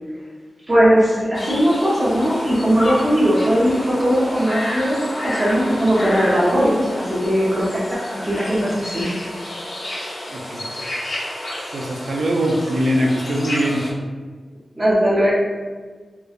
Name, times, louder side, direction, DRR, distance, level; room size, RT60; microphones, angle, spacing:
voice 1, 0.7-9.1 14.8-15.3, equal, 25° right, -8 dB, 0.6 m, -19 dB
sound 1, 1.3-13.9, left 1 dB, 65° left, 0.6 m, -30 dB
voice 2, 10.3-10.7 11.7-13.9, equal, 75° right, 0 dB, 0.4 m, -21 dB
3.0 x 2.1 x 2.3 m, 1.5 s
wide cardioid pair, 135°, 0 cm